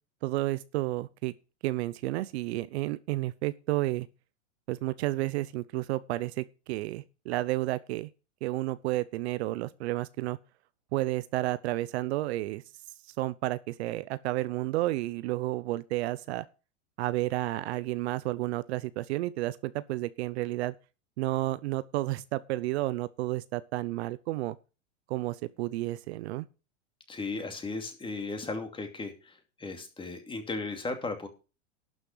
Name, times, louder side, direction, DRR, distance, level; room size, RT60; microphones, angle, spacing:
voice 1, 0.2-1.3 1.6-4.1 4.7-8.1 8.4-10.4 10.9-12.6 13.2-16.5 17.0-20.7 21.2-24.6 25.1-26.5, right 18 dB, 60° right, 0.7 m, -31 dB
voice 2, 27.1-31.3, left 3 dB, 15° left, 2.6 m, -36 dB
12.0 x 6.4 x 6.1 m
hypercardioid pair, 120°, 37 cm